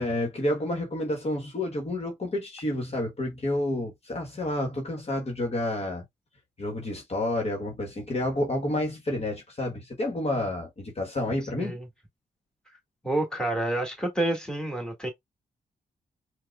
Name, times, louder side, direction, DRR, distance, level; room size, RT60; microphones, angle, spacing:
voice 1, 0.0-6.0 6.6-11.8, left 1 dB, 40° left, 1.2 m, -29 dB
voice 2, 13.0-15.1, right 1 dB, 5° left, 1.7 m, -28 dB
4.5 x 2.2 x 2.2 m
cardioid pair, 80°, 15 cm